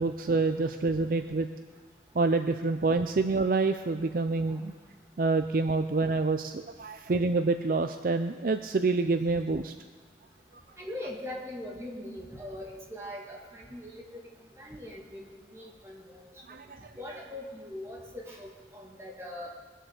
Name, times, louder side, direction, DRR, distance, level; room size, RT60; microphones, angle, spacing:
voice 1, 0.0-1.5 2.1-4.7 5.2-9.7 16.5-16.9, right 3 dB, 50° right, 8 dB, 0.5 m, -27 dB
voice 2, 10.8-14.2 14.6-15.3 15.5-16.2 17.0-19.6, left 1 dB, 15° right, -3 dB, 2.6 m, -41 dB
22.0 x 7.4 x 6.8 m, 1.4 s
head